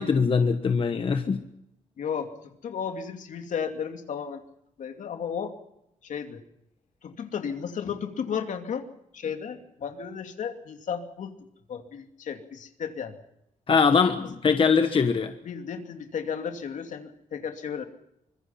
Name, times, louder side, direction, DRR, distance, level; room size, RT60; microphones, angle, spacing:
voice 1, 0.0-1.4 13.7-15.3, left 5 dB, 40° left, 7 dB, 1.3 m, -22 dB
voice 2, 2.0-4.4 4.8-5.5 6.0-6.4 7.0-8.8 9.1-11.4 11.7-13.1 15.4-17.8, left 7 dB, 70° left, 6 dB, 2.7 m, -34 dB
25.0 x 21.5 x 5.9 m, 0.79 s
cardioid pair, 115°, 13 cm